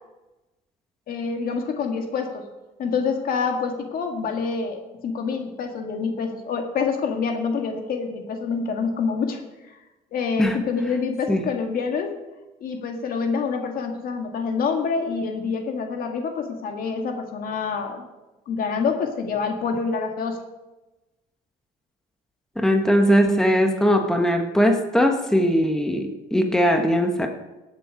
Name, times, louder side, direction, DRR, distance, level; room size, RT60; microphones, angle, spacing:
voice 1, 1.1-2.5 2.8-9.4 10.1-12.2 12.6-18.0 18.5-20.4, left 5 dB, 60° left, 4 dB, 2.0 m, -26 dB
voice 2, 22.6-27.3, equal, 5° left, 3 dB, 1.4 m, -20 dB
18.0 x 7.5 x 5.2 m, 1.1 s
cardioid pair, 110°, 17 cm